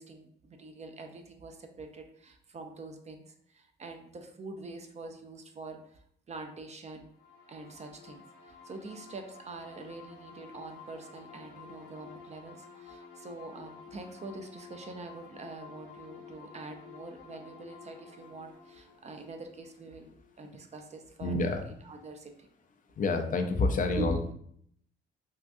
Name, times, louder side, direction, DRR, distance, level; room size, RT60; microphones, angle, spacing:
voice 1, 0.0-7.1 7.5-21.6 21.8-22.5 23.9-24.3, right 2 dB, 35° right, 5 dB, 0.4 m, -44 dB
sound 1, 7.1-20.6, left 5 dB, 90° left, 0.7 m, -52 dB
voice 2, 21.2-21.6 23.0-24.3, left 3 dB, 40° left, 5 dB, 0.4 m, -28 dB
3.6 x 2.3 x 2.6 m, 0.65 s
cardioid pair, 90°, 20 cm